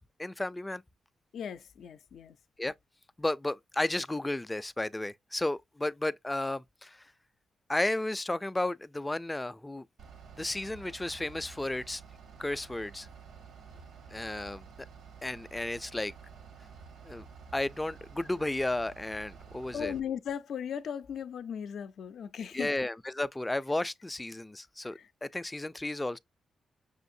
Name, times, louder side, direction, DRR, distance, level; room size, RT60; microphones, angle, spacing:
voice 1, 0.2-0.8 2.6-2.7 3.2-7.0 7.7-9.9 10.4-12.0 12.4-13.1 14.1-14.7 15.2-16.1 17.0-17.3 17.5-19.9 22.5-26.2, left 2 dB, 15° left, 0.3 m, -33 dB
voice 2, 1.3-2.4 13.7-13.8 19.7-22.7 24.9-25.1, left 8 dB, 80° left, 0.4 m, -37 dB
Bus / Idling, 10.0-20.0, right 6 dB, 85° right, 0.9 m, -51 dB
6.2 x 2.5 x 2.6 m
cardioid pair, 85°, 0 cm